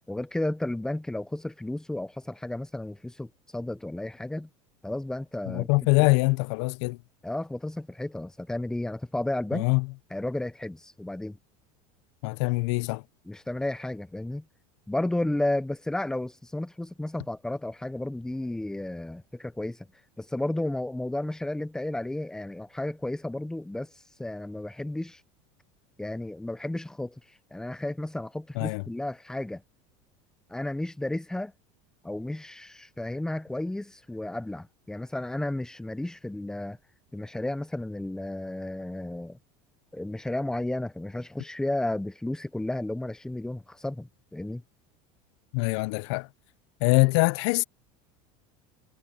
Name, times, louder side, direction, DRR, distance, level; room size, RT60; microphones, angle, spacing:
voice 1, 0.1-4.5 4.8-5.7 6.0-6.1 7.2-9.7 10.1-11.4 13.3-14.4 14.9-19.9 20.2-23.9 24.2-25.2 26.0-27.2 27.5-29.6 30.5-31.5 32.0-36.8 37.1-39.4 39.9-44.6, left 1 dB, 5° left, 0.7 m, -33 dB
voice 2, 5.5-7.0 9.5-9.9 12.2-13.0 28.6-28.8 45.5-46.3 46.8-47.6, left 27 dB, 70° left, 0.6 m, -24 dB
supercardioid pair, 140°, 16 cm